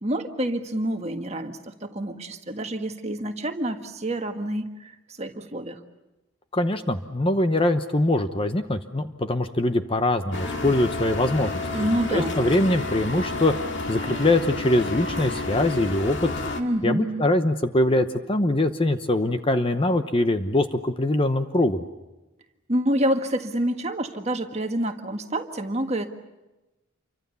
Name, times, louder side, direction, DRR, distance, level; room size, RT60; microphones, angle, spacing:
voice 1, 0.0-4.9 5.2-5.8 11.7-12.4 16.6-17.3 22.7-26.1, right 1 dB, 30° right, 5 dB, 1.7 m, -27 dB
voice 2, 6.5-11.6 12.1-13.5 13.9-16.3 16.8-21.8, left 1 dB, 25° left, 9 dB, 0.9 m, -23 dB
sound 1, 10.3-16.6, left 3 dB, 55° left, 2.2 m, -30 dB
28.5 x 24.5 x 7.0 m, 1.0 s
head